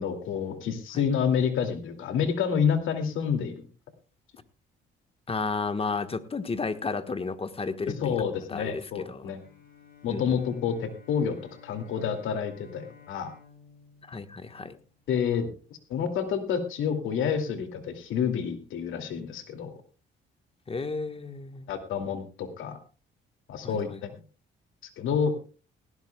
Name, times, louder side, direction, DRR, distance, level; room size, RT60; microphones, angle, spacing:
voice 1, 0.0-3.7 8.0-9.4 10.0-11.4 11.6-13.3 15.1-15.5 15.9-19.7 21.7-22.8 23.5-24.1 25.0-25.3, left 7 dB, 85° left, 7 dB, 2.5 m, -28 dB
voice 2, 5.3-8.1 8.5-9.3 10.1-10.2 14.1-14.8 20.7-21.7 23.6-24.0, left 4 dB, 30° left, 10 dB, 1.3 m, -32 dB
Bowed string instrument, 9.4-15.3, left 6 dB, 45° left, 6.1 m, -55 dB
19.0 x 16.0 x 2.3 m, 0.34 s
cardioid pair, 90°, 20 cm